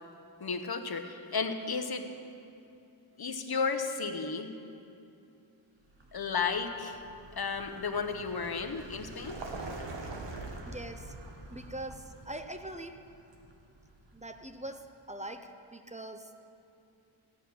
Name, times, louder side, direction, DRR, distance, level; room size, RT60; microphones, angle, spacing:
voice 1, 0.4-2.1 3.2-4.5 6.1-7.0 7.4-9.4, left 5 dB, 50° left, 7 dB, 1.0 m, -33 dB
Vehicle, 5.9-14.7, right 2 dB, 60° right, 1.3 m, -45 dB
voice 2, 10.6-11.1 11.5-13.0 14.1-16.5, right 1 dB, 15° right, 6 dB, 0.6 m, -43 dB
15.0 x 9.2 x 6.0 m, 2.7 s
wide cardioid pair, 105°, 48 cm